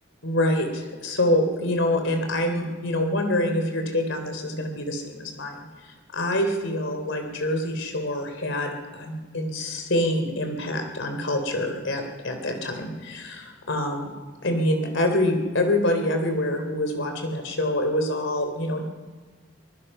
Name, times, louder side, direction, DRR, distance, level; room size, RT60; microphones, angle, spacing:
voice 1, 0.2-5.7 6.1-14.1 14.4-18.8, left 1 dB, 70° left, 5 dB, 3.4 m, -26 dB
23.5 x 20.5 x 5.6 m, 1.4 s
head